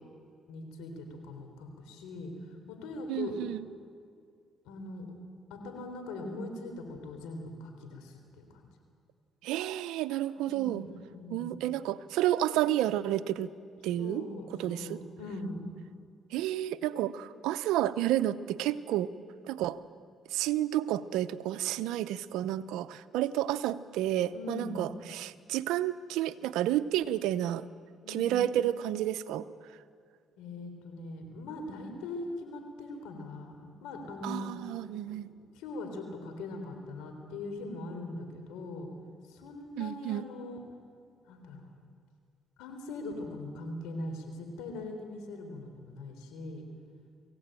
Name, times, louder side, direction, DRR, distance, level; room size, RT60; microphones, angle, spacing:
voice 1, 0.5-3.4 4.7-5.1 5.5-8.6 10.4-11.5 14.0-15.6 24.3-24.8 28.0-28.4 30.4-34.5 35.1-38.9 39.3-40.6 41.3-41.7 42.6-46.7, left 2 dB, 90° left, 5 dB, 3.7 m, -41 dB
voice 2, 3.1-3.6 9.4-10.8 11.3-13.5 13.8-14.2 14.6-15.0 16.3-19.1 19.4-19.8 20.3-27.6 28.1-29.5 34.2-35.3 39.8-40.3, right 13 dB, 85° right, 14 dB, 0.7 m, -30 dB
24.0 x 16.0 x 9.0 m, 2.2 s
supercardioid pair, 70°, 0 cm